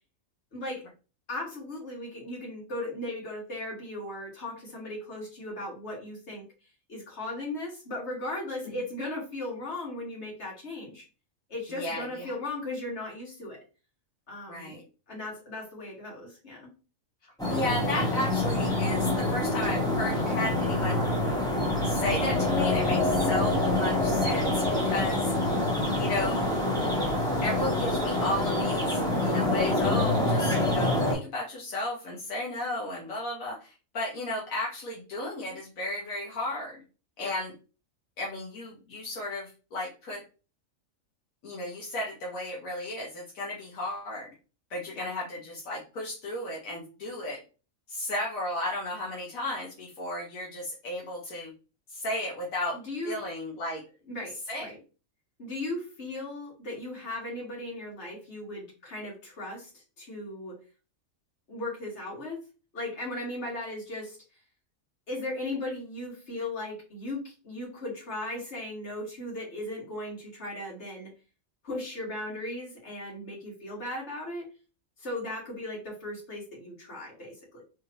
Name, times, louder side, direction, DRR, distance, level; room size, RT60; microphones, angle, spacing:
voice 1, 0.5-0.8 1.3-6.4 6.9-11.0 11.5-13.6 14.3-14.8 15.1-16.7 37.2-37.3 44.9-45.1 52.7-53.2 54.1-54.3 54.6-54.8 55.4-60.6 61.5-62.4 62.7-64.2 65.1-71.1 71.6-74.5 75.0-77.6, left 1 dB, 55° left, -3 dB, 2.1 m, -37 dB
voice 2, 11.8-12.3 14.5-14.8 17.5-21.1 21.8-25.3 26.0-26.5 27.4-36.8 37.2-37.5 38.2-40.2 41.4-44.3 44.7-47.4 47.9-51.5 51.9-52.8 53.0-53.8 54.5-54.7, left 1 dB, 80° left, -3 dB, 1.4 m, -34 dB
sound 1, 17.4-31.1, left 1 dB, 5° left, 1.2 m, -26 dB
3.5 x 3.2 x 2.9 m, 0.33 s
omnidirectional pair, 1.4 m